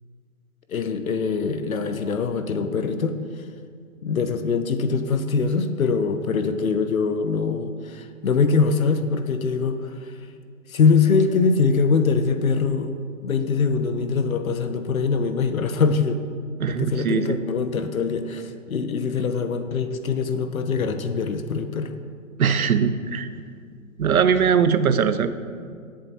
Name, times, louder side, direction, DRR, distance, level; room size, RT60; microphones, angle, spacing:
voice 1, 0.7-3.4 4.0-10.1 10.7-12.9 13.2-16.2 16.7-21.9, left 5 dB, 75° left, 9 dB, 1.1 m, -23 dB
voice 2, 16.6-17.4 22.4-23.3 24.0-25.3, right 7 dB, 80° right, 12 dB, 0.9 m, -20 dB
16.5 x 7.6 x 4.4 m, 2.1 s
hypercardioid pair, 145°, 42 cm